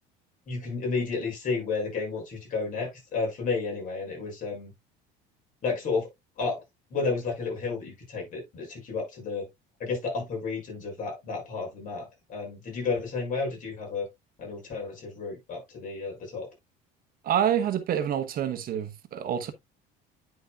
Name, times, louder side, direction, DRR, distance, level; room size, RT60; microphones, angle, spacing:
voice 1, 0.5-4.7 5.6-6.1 6.4-6.6 6.9-9.5 9.8-14.0 14.4-16.5, left 4 dB, 40° left, 6.1 m, -32 dB
voice 2, 17.2-19.5, right 9 dB, 45° right, 1.0 m, -27 dB
9.9 x 6.5 x 2.3 m
cardioid pair, 130°, 20 cm